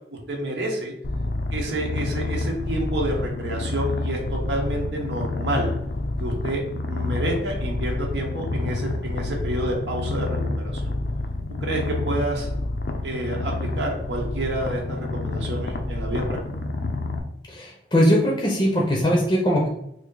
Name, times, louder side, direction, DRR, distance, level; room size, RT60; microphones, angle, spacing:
voice 1, 0.3-0.9 1.5-5.7 6.2-6.6 6.9-10.4 10.6-10.9 11.6-12.5 13.0-16.4, right 1 dB, 80° right, -1 dB, 0.8 m, -28 dB
Purr, 1.0-17.2, left 2 dB, 65° left, 0.5 m, -28 dB
voice 2, 17.5-19.7, equal, 25° left, -2 dB, 0.6 m, -20 dB
3.1 x 2.6 x 3.7 m, 0.77 s
head